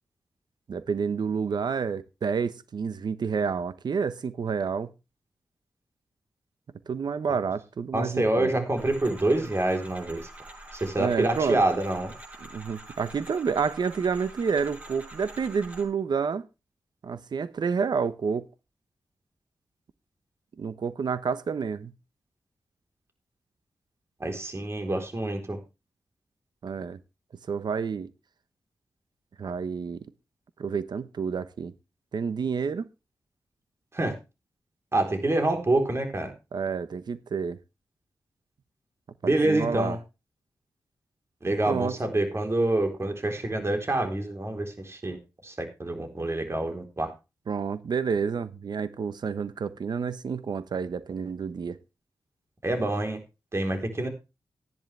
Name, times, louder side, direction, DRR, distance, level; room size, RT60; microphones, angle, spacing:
voice 1, 0.7-4.9 6.9-8.5 11.0-11.6 12.4-16.5 17.0-18.4 20.6-21.9 26.6-27.0 27.5-28.1 29.4-30.1 30.6-31.7 32.1-32.9 36.5-37.6 39.2-40.0 41.7-41.9 47.5-51.8, right 6 dB, 70° right, 1.1 m, -29 dB
voice 2, 7.9-10.2 10.7-12.1 24.2-25.6 33.9-34.1 34.9-36.3 39.2-40.0 41.4-45.2 45.4-47.1 52.6-53.2 53.5-54.1, right 2 dB, 35° right, 3.9 m, -26 dB
sound 1, 8.8-15.9, right 1 dB, 20° right, 6.7 m, -45 dB
13.5 x 10.5 x 3.4 m
cardioid pair, 60°, 8 cm